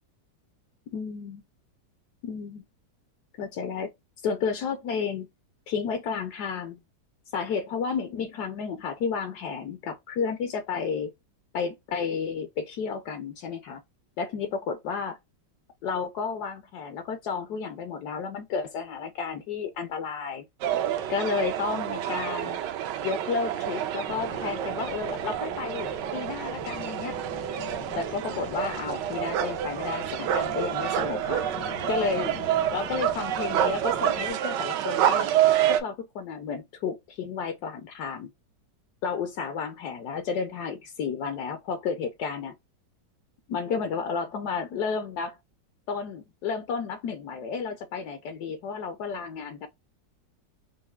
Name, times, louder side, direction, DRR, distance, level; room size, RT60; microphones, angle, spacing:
voice 1, 0.9-1.4 2.2-2.6 3.4-3.9 4.2-5.3 5.7-6.8 7.3-11.1 11.5-13.8 14.2-15.2 15.8-20.4 21.1-22.6 23.0-27.2 27.9-31.4 31.9-32.3 32.7-35.3 35.7-38.3 39.0-42.5 43.5-45.4 45.9-49.7, left 5 dB, 70° left, 1.1 m, -32 dB
sound 1, 20.6-35.8, right 11 dB, 80° right, 1.2 m, -28 dB
sound 2, 24.1-34.3, left 6 dB, 90° left, 1.8 m, -43 dB
4.7 x 2.5 x 2.3 m
omnidirectional pair, 1.9 m